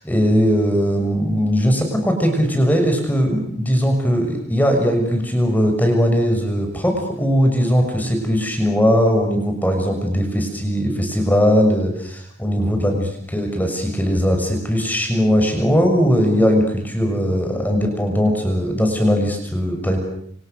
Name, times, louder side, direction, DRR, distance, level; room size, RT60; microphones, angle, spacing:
voice 1, 0.0-13.0 13.3-20.0, equal, 10° left, 4 dB, 6.5 m, -19 dB
29.5 x 28.5 x 6.9 m, 0.64 s
head